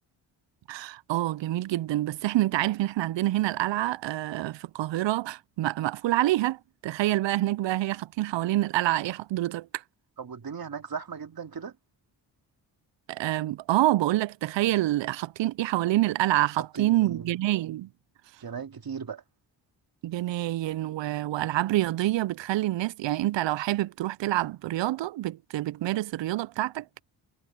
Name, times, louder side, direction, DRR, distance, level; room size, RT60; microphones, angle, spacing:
voice 1, 0.7-9.8 13.1-17.9 20.0-27.0, right 15 dB, 65° right, 0.6 m, -27 dB
voice 2, 10.2-11.8 16.6-17.4 18.4-19.2, right 6 dB, 45° right, 2.6 m, -37 dB
supercardioid pair, 50°, 49 cm